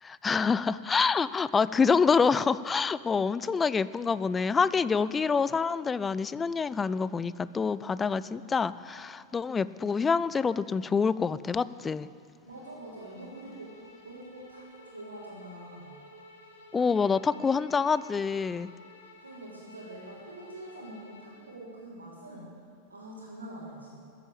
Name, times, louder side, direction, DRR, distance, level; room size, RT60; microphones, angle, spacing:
voice 1, 0.0-12.1 16.7-18.7, left 5 dB, 15° left, 17 dB, 0.4 m, -26 dB
voice 2, 12.4-13.8 14.0-16.0 19.2-22.5 22.9-24.0, right 1 dB, 75° right, -9 dB, 3.9 m, -45 dB
Bowed string instrument, 12.5-21.6, left 2 dB, 60° left, 2.0 m, -54 dB
15.0 x 9.9 x 8.5 m, 2.3 s
figure-of-eight pair, 90°, 0 cm